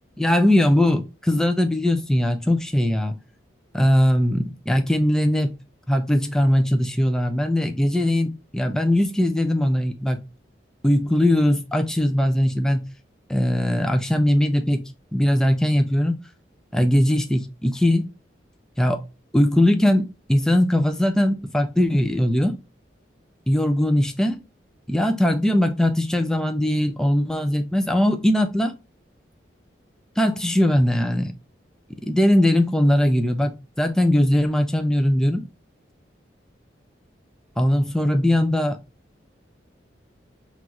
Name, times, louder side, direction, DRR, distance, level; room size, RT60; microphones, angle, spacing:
voice 1, 0.2-3.2 3.7-5.6 5.9-10.2 10.8-12.9 13.3-16.2 16.7-18.1 18.8-19.0 19.3-22.6 23.5-24.4 24.9-28.7 30.2-31.3 32.0-35.4 37.6-38.8, left 1 dB, 5° left, 0.4 m, -20 dB
5.8 x 2.5 x 2.8 m
head